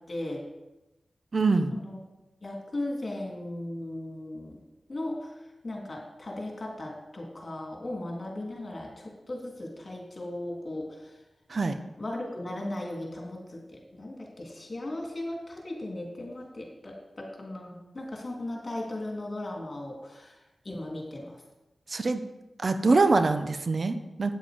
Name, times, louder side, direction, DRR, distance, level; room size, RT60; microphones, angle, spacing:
voice 1, 0.1-0.4 1.7-2.0 2.4-4.6 4.9-11.2 12.0-21.4, left 1 dB, 50° left, -1 dB, 3.0 m, -37 dB
voice 2, 1.3-1.7 11.5-11.8 21.9-22.2 22.6-24.4, right 3 dB, 60° right, 9 dB, 0.8 m, -24 dB
9.0 x 7.7 x 5.1 m, 1.0 s
cardioid pair, 45°, 0 cm